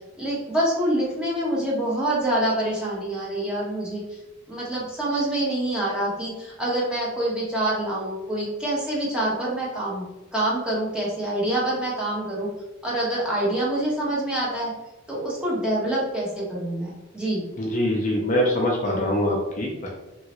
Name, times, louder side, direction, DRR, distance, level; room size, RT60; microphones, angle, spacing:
voice 1, 0.2-4.2 4.5-10.0 10.3-12.5 12.8-14.7 15.1-17.5, right 1 dB, 5° right, -6 dB, 0.8 m, -26 dB
voice 2, 17.6-19.9, left 1 dB, 35° left, -1 dB, 0.4 m, -23 dB
3.0 x 2.7 x 2.9 m, 1.0 s
head